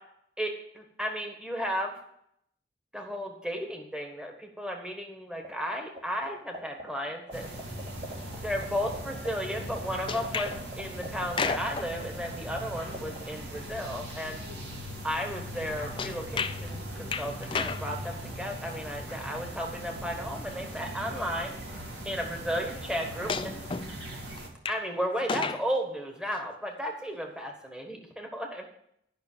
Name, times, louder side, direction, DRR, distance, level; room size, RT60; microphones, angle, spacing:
voice 1, 0.4-1.9 2.9-7.4 8.4-14.4 15.0-16.8 17.2-21.5 22.0-23.7 24.7-28.6, equal, 5° right, 2 dB, 1.4 m, -34 dB
sound 1, 5.4-6.0 6.3-8.3 8.6-8.7 8.9-12.6 12.9-13.2, right 1 dB, 55° right, 3.4 m, -39 dB
sound 2, 7.3-24.5, equal, 70° right, 2.5 m, -40 dB
sound 3, 10.1-10.6 11.2-11.9 16.0-16.6 17.1-17.9 19.7-19.8 21.0-21.1 23.3-23.9 24.4-24.8 25.2-25.6 26.3-26.4, left 5 dB, 30° left, 0.5 m, -32 dB
12.0 x 5.8 x 7.3 m, 0.73 s
head